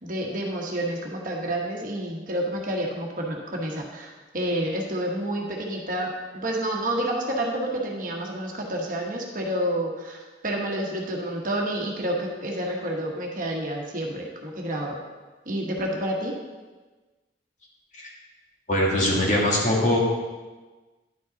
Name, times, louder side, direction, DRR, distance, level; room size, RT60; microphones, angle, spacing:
voice 1, 0.0-4.1 4.3-10.2 10.4-15.0 15.5-16.3, right 1 dB, 50° right, -1 dB, 1.2 m, -29 dB
voice 2, 18.7-20.0, left 1 dB, 45° left, -4 dB, 1.9 m, -22 dB
10.5 x 5.4 x 4.0 m, 1.3 s
head